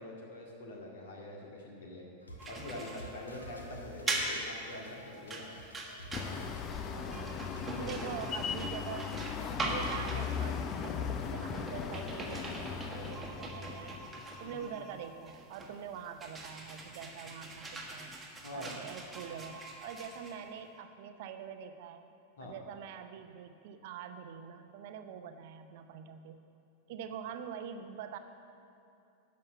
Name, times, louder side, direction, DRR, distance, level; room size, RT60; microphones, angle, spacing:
voice 1, 0.0-2.0 2.5-5.5 7.7-8.2 14.4-14.7 18.4-18.7 22.4-22.5, left 2 dB, 60° left, -1 dB, 2.2 m, -45 dB
sound 1, 2.2-7.7, equal, 80° left, 1.3 m, -51 dB
sound 2, 2.4-20.8, right 2 dB, 10° right, 1.6 m, -42 dB
sound 3, 6.1-14.4, left 6 dB, 30° left, 0.7 m, -38 dB
voice 2, 6.9-7.5 7.8-9.2 9.6-14.0 14.4-18.1 18.5-22.0 22.4-26.4 26.9-28.2, right 8 dB, 50° right, 8 dB, 0.7 m, -44 dB
12.0 x 5.7 x 7.2 m, 2.7 s
figure-of-eight pair, 90°, 0 cm